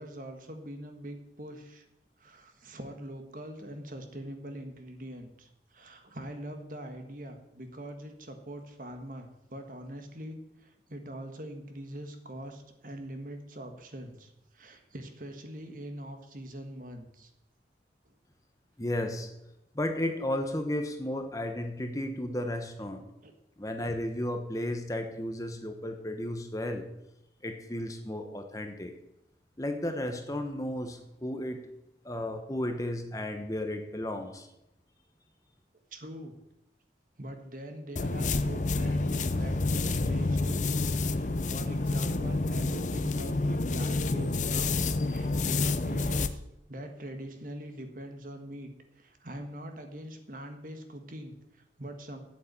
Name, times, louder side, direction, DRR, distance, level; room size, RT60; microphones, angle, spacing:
voice 1, 0.0-1.9 2.2-17.3 23.2-23.3 35.9-36.4 37.2-46.4 46.7-48.7 48.9-52.2, right 1 dB, 45° right, 6 dB, 1.6 m, -43 dB
voice 2, 18.8-19.3 19.7-23.0 23.6-26.9 27.4-28.9 29.6-31.7 32.0-34.5, left 1 dB, 20° left, 5 dB, 1.0 m, -33 dB
sound 1, 38.0-46.3, left 3 dB, 40° left, 0.6 m, -29 dB
8.5 x 8.3 x 8.5 m, 0.85 s
head